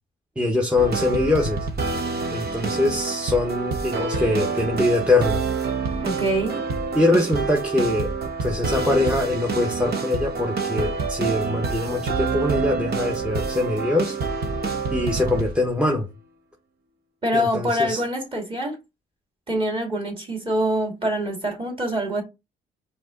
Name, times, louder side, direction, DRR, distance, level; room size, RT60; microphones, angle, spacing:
voice 1, 0.4-1.7 2.3-5.4 6.9-8.1 8.4-14.2 14.9-16.1 17.3-18.0, left 2 dB, 5° right, 0.9 m, -23 dB
sound 1, 0.8-15.7, right 4 dB, 55° right, 0.9 m, -27 dB
voice 2, 6.0-6.6 17.2-18.8 19.5-22.2, equal, 25° right, 2.4 m, -25 dB
4.6 x 2.9 x 3.7 m
cardioid pair, 90°, 20 cm